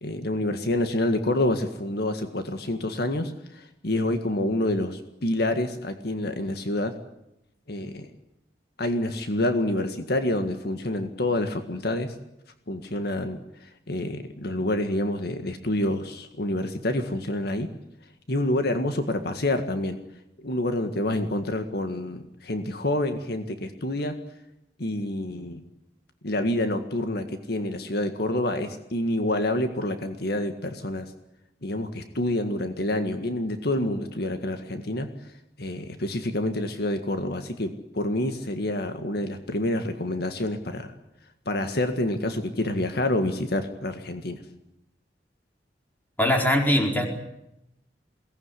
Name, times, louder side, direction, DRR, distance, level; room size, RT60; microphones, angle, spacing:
voice 1, 0.0-7.0 7.7-8.1 8.8-12.1 12.7-17.7 18.3-20.0 20.4-24.2 24.8-25.6 26.2-31.1 31.6-35.1 35.6-40.9 41.5-44.4, left 1 dB, 65° left, 7 dB, 1.9 m, -27 dB
voice 2, 46.2-47.1, left 1 dB, 10° left, 2 dB, 4.5 m, -21 dB
23.0 x 18.5 x 9.9 m, 0.86 s
head